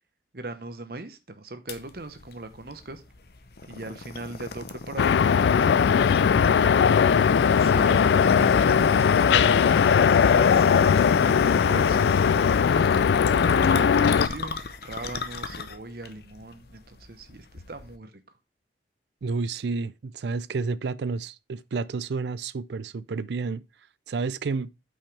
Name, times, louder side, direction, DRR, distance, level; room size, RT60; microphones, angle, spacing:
voice 1, 0.3-3.0 3.6-5.4 5.6-6.7 7.5-10.9 11.2-12.8 13.4-18.1, right 2 dB, 55° right, 1.0 m, -39 dB
sound 1, 1.7-18.0, left 3 dB, 60° left, 0.7 m, -37 dB
sound 2, 5.0-14.3, left 7 dB, 75° left, 0.3 m, -19 dB
voice 2, 19.2-23.6 24.1-24.7, right 4 dB, 70° right, 0.4 m, -30 dB
8.7 x 5.4 x 3.3 m
head